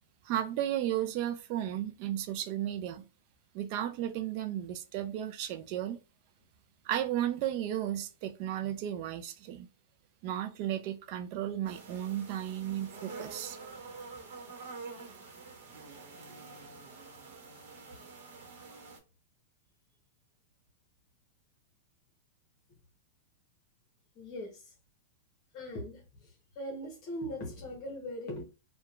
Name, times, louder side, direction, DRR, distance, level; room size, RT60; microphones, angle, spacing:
voice 1, 0.2-3.1 3.5-6.0 6.8-9.7 10.2-13.6, right 11 dB, 50° right, 0.4 m, -34 dB
sound 1, 11.6-19.0, right 4 dB, 65° right, 0.9 m, -47 dB
voice 2, 24.1-24.7 25.5-28.4, left 1 dB, 40° left, 0.8 m, -40 dB
2.9 x 2.2 x 2.3 m
hypercardioid pair, 140°, 0 cm